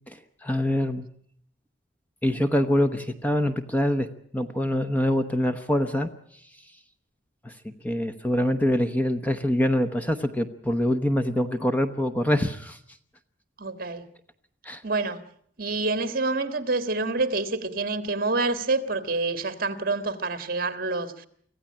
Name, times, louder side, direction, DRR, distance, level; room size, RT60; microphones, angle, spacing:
voice 1, 0.1-1.1 2.2-4.1 4.3-6.1 7.4-12.8 14.6-14.8, left 1 dB, 10° left, 0.9 m, -25 dB
voice 2, 13.6-14.0 14.8-15.2 15.6-21.3, right 3 dB, 50° right, 1.7 m, -27 dB
25.5 x 15.5 x 8.7 m
head